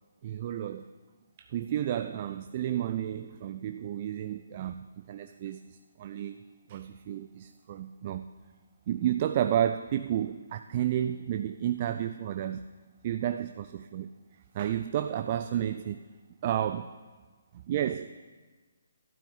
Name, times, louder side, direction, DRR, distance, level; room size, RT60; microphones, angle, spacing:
voice 1, 0.2-0.9 1.5-6.4 6.7-8.3 8.9-12.6 13.0-14.1 14.5-16.0 16.4-16.9 17.7-18.2, right 11 dB, 35° right, 0.4 m, -31 dB
12.5 x 12.0 x 4.0 m
figure-of-eight pair, 140°, 0 cm